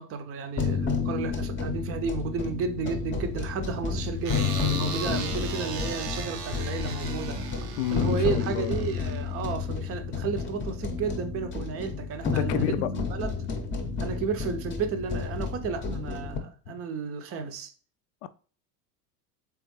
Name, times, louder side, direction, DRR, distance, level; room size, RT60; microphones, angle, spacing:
voice 1, 0.0-4.4 4.7-7.4 7.9-12.7 13.1-13.3 14.0-17.7, right 5 dB, 30° right, 0.6 m, -32 dB
sound 1, 0.6-16.4, left 5 dB, 25° left, 0.8 m, -31 dB
sound 2, 4.2-9.6, right 6 dB, 90° right, 0.7 m, -37 dB
voice 2, 7.8-8.7 12.2-13.1 16.7-16.8 18.2-18.3, left 11 dB, 55° left, 0.5 m, -31 dB
3.5 x 3.4 x 3.1 m
hypercardioid pair, 75°, 47 cm